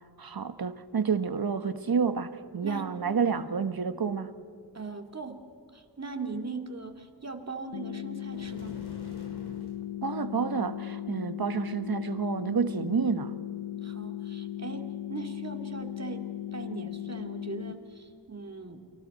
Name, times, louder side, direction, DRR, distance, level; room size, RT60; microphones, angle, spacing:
voice 1, 0.2-4.3 10.0-13.3, right 6 dB, 60° right, 1.4 m, -29 dB
voice 2, 4.7-5.4 5.7-8.8 13.8-18.8, right 4 dB, 40° right, 2.5 m, -40 dB
sound 1, 7.7-17.7, left 12 dB, 85° left, 0.9 m, -37 dB
sound 2, 8.3-9.8, left 2 dB, 65° left, 4.2 m, -47 dB
29.5 x 25.5 x 4.3 m
cardioid pair, 60°, 42 cm